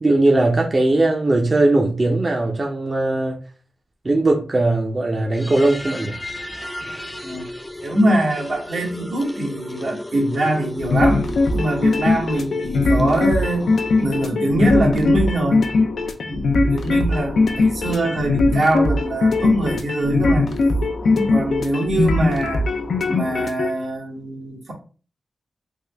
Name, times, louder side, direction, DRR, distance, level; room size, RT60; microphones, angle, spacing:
voice 1, 0.0-3.4 4.0-6.2, right 2 dB, 40° right, 0.6 m, -19 dB
sound 1, 5.2-14.1, left 1 dB, 15° left, 0.4 m, -35 dB
voice 2, 7.2-7.5 7.8-11.2 11.5-13.7 14.0-15.7 16.2-20.5 21.0-22.6 23.1-24.7, right 1 dB, 75° right, 1.1 m, -23 dB
sound 2, 10.8-23.7, left 3 dB, 85° left, 0.4 m, -20 dB
3.5 x 2.1 x 3.3 m
wide cardioid pair, 80°, 0 cm